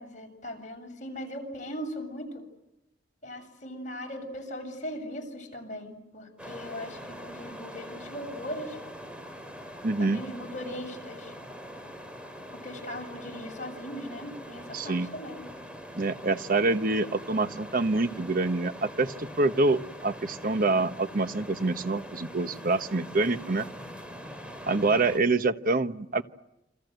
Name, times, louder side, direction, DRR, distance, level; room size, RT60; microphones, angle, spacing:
voice 1, 0.0-2.4 3.2-8.8 10.0-11.3 12.6-15.5, equal, 40° left, 2 dB, 7.5 m, -39 dB
sound 1, 6.4-25.2, equal, 5° right, 3.8 m, -43 dB
voice 2, 9.8-10.2 14.7-15.1 15.9-23.7 24.6-26.2, right 3 dB, 50° right, 10 dB, 1.1 m, -26 dB
28.5 x 25.5 x 8.1 m, 0.88 s
head